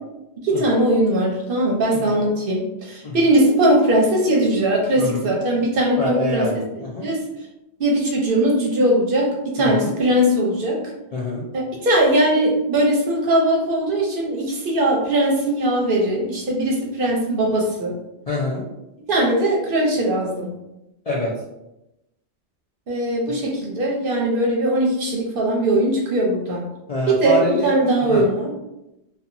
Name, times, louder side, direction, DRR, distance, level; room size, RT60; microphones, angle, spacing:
voice 1, 0.4-6.4 7.0-7.2 7.8-10.8 11.5-17.9 19.1-20.5 22.9-26.7 27.2-28.5, right 1 dB, 60° right, -1 dB, 0.7 m, -20 dB
voice 2, 5.0-5.3 5.9-7.1 9.6-9.9 11.1-11.4 18.3-18.6 21.1-21.3 23.3-23.4 26.9-28.2, left 1 dB, 55° left, -6 dB, 0.4 m, -26 dB
2.8 x 2.2 x 2.5 m, 0.92 s
omnidirectional pair, 1.1 m